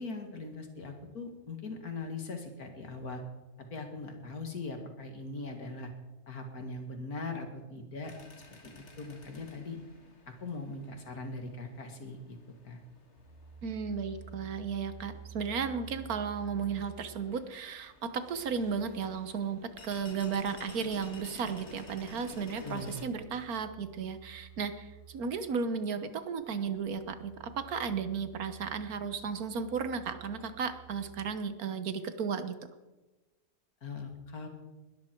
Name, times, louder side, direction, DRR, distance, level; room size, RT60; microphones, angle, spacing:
voice 1, 0.0-3.2 3.7-5.9 6.3-8.1 8.6-9.8 10.4-12.4 12.6-12.8 22.6-23.0 33.8-34.5, left 3 dB, 90° left, 5 dB, 2.6 m, -40 dB
sound 1, 8.0-23.1, left 3 dB, 50° left, 2.1 m, -53 dB
sound 2, 13.1-31.2, right 8 dB, 35° right, 5.1 m, -53 dB
voice 2, 13.6-32.5, right 6 dB, 85° right, 11 dB, 1.6 m, -34 dB
20.5 x 13.0 x 4.6 m, 1.1 s
omnidirectional pair, 1.5 m